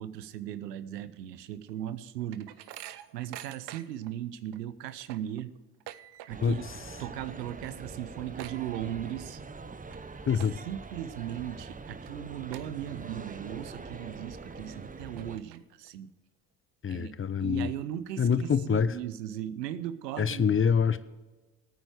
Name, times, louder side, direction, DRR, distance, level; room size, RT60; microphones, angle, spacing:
voice 1, 0.0-2.6 3.1-5.5 6.3-6.6 7.0-9.4 10.3-16.1 16.9-20.6, right 11 dB, 85° right, 15 dB, 0.7 m, -38 dB
sound 1, 1.7-4.1 4.5-4.6 4.9-6.6 6.9-7.3 7.5-7.6 7.9-9.3 9.7-10.0 10.3-10.9 11.4-11.5 12.1-12.2 12.5-13.3 13.7-13.8 14.5-14.6 15.0-15.9, right 13 dB, 55° right, 0.9 m, -47 dB
sound 2, 6.3-15.4, right 4 dB, 15° right, 0.9 m, -44 dB
voice 2, 10.3-10.6 16.8-17.7 18.2-18.9 20.2-21.0, left 6 dB, 25° left, 15 dB, 0.8 m, -25 dB
19.0 x 9.1 x 3.4 m, 1.2 s
hypercardioid pair, 50°, 48 cm